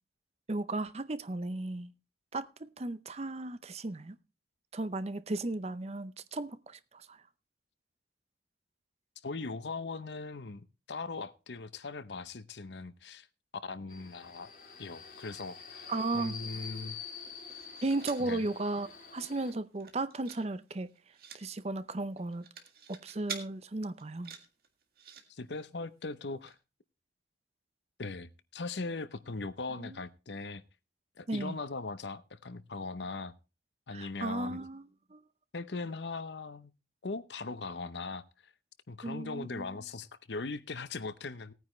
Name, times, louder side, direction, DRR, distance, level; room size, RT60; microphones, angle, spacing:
voice 1, 0.5-1.9 2.3-4.2 4.7-7.2 15.9-16.3 17.8-20.9 21.3-22.4 22.9-24.3 29.8-30.0 31.3-31.6 33.9-34.8 35.1-35.2 39.0-39.7, right 2 dB, 35° right, 0.6 m, -35 dB
voice 2, 9.2-13.3 13.6-14.5 14.8-15.9 16.1-17.0 18.2-18.4 25.3-26.6 28.0-30.6 31.2-33.3 33.9-34.6 35.5-36.7 37.0-38.5 38.9-41.5, left 3 dB, 75° left, 0.8 m, -40 dB
Subway metro underground, 13.9-19.5, left 5 dB, 50° left, 3.0 m, -46 dB
sound 1, 17.2-18.3 18.8-18.9 19.1-19.4 19.7-20.4 20.7-21.4 22.2-23.4 24.0-25.2 26.1-26.2 26.5-26.6, right 7 dB, 55° right, 1.9 m, -46 dB
18.0 x 9.4 x 3.2 m
head